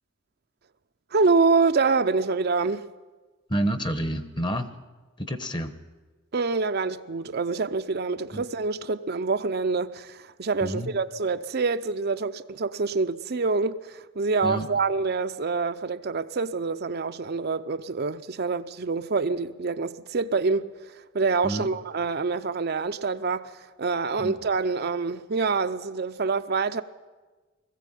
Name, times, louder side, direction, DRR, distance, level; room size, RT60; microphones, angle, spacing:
voice 1, 1.1-2.9 6.3-20.7 21.1-23.5 23.8-26.8, right 4 dB, 50° right, 0.6 m, -26 dB
voice 2, 3.5-4.7 5.2-5.7 8.3-8.4 10.6-10.9 14.4-14.7 21.4-21.7 24.2-24.3, right 1 dB, 25° left, 1.1 m, -29 dB
20.5 x 15.0 x 9.1 m
head